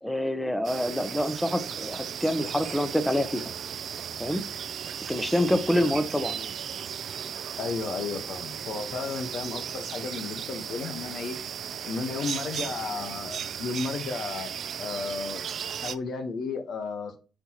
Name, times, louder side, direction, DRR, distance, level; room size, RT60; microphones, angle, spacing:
voice 1, 0.0-3.5 4.2-4.4 5.1-6.5, left 1 dB, 5° left, 0.8 m, -27 dB
sound 1, 0.6-16.0, right 8 dB, 60° right, 0.4 m, -36 dB
voice 2, 7.6-11.4 11.8-14.5 14.8-15.4 15.8-17.2, left 4 dB, 65° left, 1.1 m, -33 dB
9.8 x 4.6 x 2.9 m
cardioid pair, 90°, 0 cm